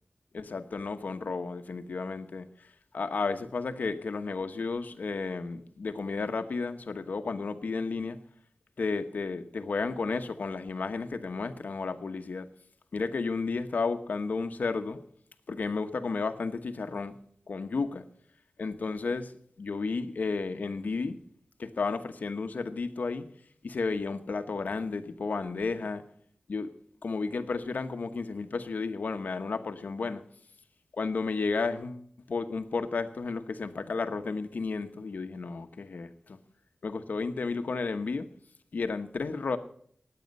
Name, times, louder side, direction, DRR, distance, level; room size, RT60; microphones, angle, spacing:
voice 1, 0.3-2.5 2.9-8.2 8.8-12.5 12.9-15.0 15.5-17.2 17.5-18.0 18.6-19.3 19.6-21.2 21.6-23.3 23.6-26.0 26.5-26.7 27.0-30.2 31.0-36.4 36.8-38.3 38.7-39.6, left 4 dB, 80° left, 1.0 m, -32 dB
18.5 x 8.7 x 5.4 m
cardioid pair, 40°, 3 cm